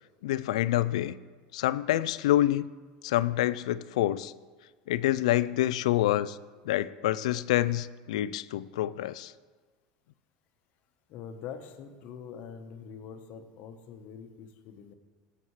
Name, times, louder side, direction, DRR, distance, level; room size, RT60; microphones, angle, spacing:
voice 1, 0.2-1.1 1.5-2.7 3.0-4.3 4.9-6.4 6.7-9.3, left 14 dB, 85° left, 17 dB, 0.3 m, -27 dB
voice 2, 11.1-14.9, left 7 dB, 55° left, 7 dB, 1.0 m, -44 dB
15.5 x 7.0 x 3.2 m, 1.4 s
supercardioid pair, 120°, 3 cm